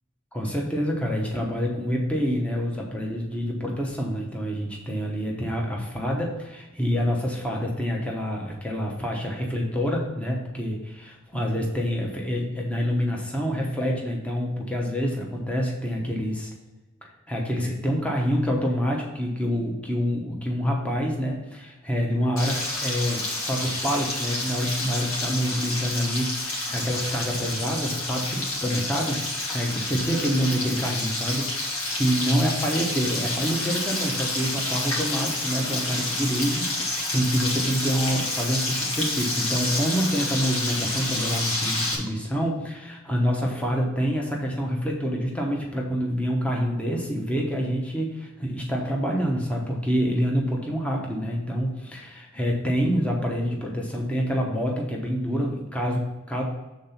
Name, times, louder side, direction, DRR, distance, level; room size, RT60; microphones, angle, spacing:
voice 1, 0.3-16.5 17.0-56.4, equal, 5° left, -1 dB, 0.9 m, -27 dB
Frying (food), 22.4-41.9, left 2 dB, 75° left, 2.1 m, -29 dB
7.4 x 3.9 x 5.6 m, 1.1 s
head